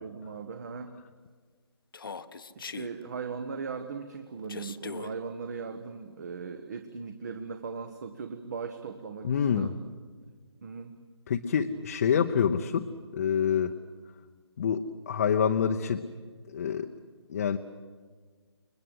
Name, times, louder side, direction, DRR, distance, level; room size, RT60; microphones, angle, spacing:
voice 1, 0.0-0.9 2.5-9.7 10.6-11.0, right 5 dB, 35° right, 7 dB, 1.3 m, -38 dB
Human voice, 1.9-2.9 4.5-5.1, left 5 dB, 50° left, 1.1 m, -40 dB
voice 2, 9.2-9.7 11.3-13.8 14.6-16.0 16.5-16.9 17.3-17.6, left 7 dB, 30° left, 5 dB, 0.9 m, -27 dB
29.5 x 21.5 x 8.1 m, 1.5 s
figure-of-eight pair, 150°, 15 cm